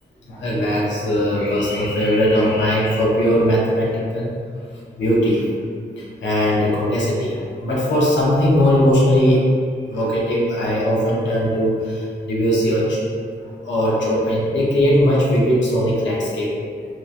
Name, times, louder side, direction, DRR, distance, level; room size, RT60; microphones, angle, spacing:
voice 1, 0.3-4.3 5.0-5.5 6.0-9.4 9.9-13.0 13.4-16.5, equal, 80° left, -5 dB, 0.7 m, -19 dB
2.9 x 2.1 x 2.4 m, 2.1 s
cardioid pair, 55°, 19 cm